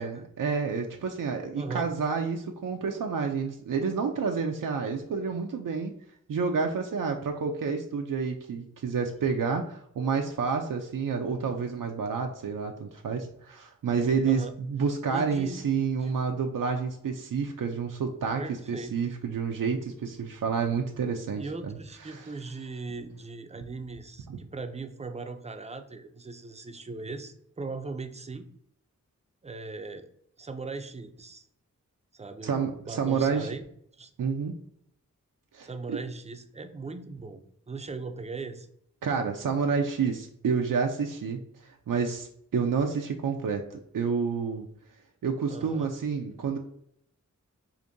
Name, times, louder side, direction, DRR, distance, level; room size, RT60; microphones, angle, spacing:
voice 1, 0.0-6.0 6.3-18.4 18.7-21.7 22.1-22.2 24.3-24.4 32.4-33.5 34.2-34.6 35.5-36.0 39.0-44.7 45.2-46.6, right 5 dB, 80° right, 3 dB, 0.5 m, -29 dB
voice 2, 1.5-1.9 14.2-14.6 15.1-15.6 15.9-16.1 18.4-19.0 21.4-28.5 29.4-30.1 30.4-31.5 32.1-33.6 34.0-34.1 35.6-38.7 45.5-45.9, right 3 dB, 20° right, 7 dB, 0.4 m, -39 dB
5.0 x 2.6 x 2.5 m, 0.70 s
wide cardioid pair, 75°, 32 cm